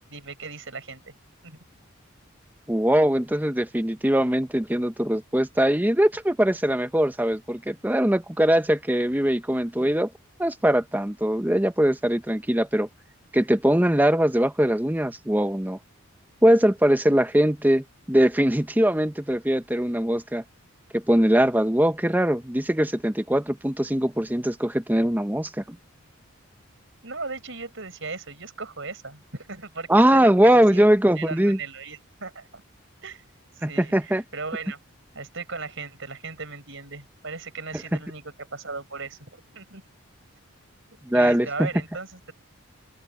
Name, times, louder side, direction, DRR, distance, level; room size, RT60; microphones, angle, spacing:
voice 1, 0.1-1.1 1.4-1.6 27.0-30.8 31.1-32.6 33.0-33.2 33.5-34.8 35.1-38.2 38.5-39.8 41.1-42.3, right 4 dB, 60° right, 5.3 m, -37 dB
voice 2, 2.7-10.1 10.4-12.9 13.3-15.8 16.4-20.4 20.9-25.8 29.9-31.6 33.6-34.2 37.9-38.0 41.0-41.7, right 1 dB, 10° right, 0.6 m, -21 dB
open air
head